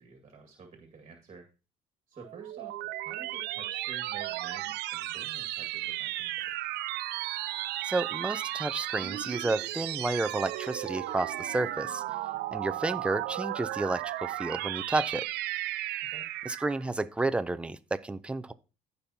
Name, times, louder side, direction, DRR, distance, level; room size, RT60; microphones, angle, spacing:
voice 1, 0.0-1.5 2.1-6.5 16.1-16.3, right 4 dB, 35° right, 2.0 m, -50 dB
sound 1, 2.2-16.8, right 15 dB, 80° right, 0.6 m, -35 dB
voice 2, 7.8-12.0 12.5-15.3 16.5-18.5, right 2 dB, 5° right, 0.5 m, -31 dB
14.5 x 5.4 x 2.8 m
cardioid pair, 110°, 17 cm